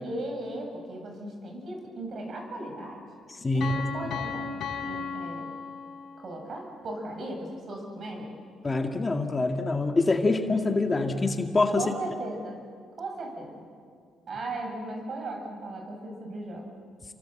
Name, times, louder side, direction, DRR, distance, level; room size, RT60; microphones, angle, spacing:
voice 1, 0.0-3.0 3.5-5.5 6.2-8.3 11.8-12.6 13.0-13.7 14.3-16.7, right 2 dB, 55° right, 2 dB, 7.5 m, -37 dB
voice 2, 3.4-3.7 8.6-11.8, left 3 dB, 25° left, 4 dB, 1.9 m, -25 dB
Piano, 3.6-6.4, left 5 dB, 75° left, 4.1 m, -35 dB
29.5 x 24.5 x 7.7 m, 2.1 s
cardioid pair, 90°, 0 cm